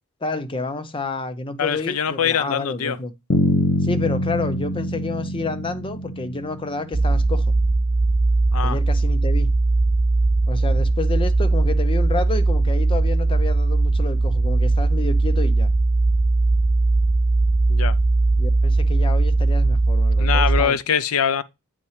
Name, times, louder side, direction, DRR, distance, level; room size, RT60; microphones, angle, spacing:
voice 1, 0.2-3.1 3.8-7.4 8.6-9.5 10.5-15.7 18.4-20.8, left 3 dB, 25° left, 0.6 m, -29 dB
voice 2, 1.6-3.0 8.5-8.8 17.7-18.0 20.2-21.4, left 7 dB, 75° left, 0.5 m, -23 dB
Bass guitar, 3.3-7.2, equal, 60° left, 1.1 m, -24 dB
sound 1, 6.9-20.6, right 2 dB, 35° right, 0.5 m, -19 dB
7.9 x 5.5 x 3.2 m
head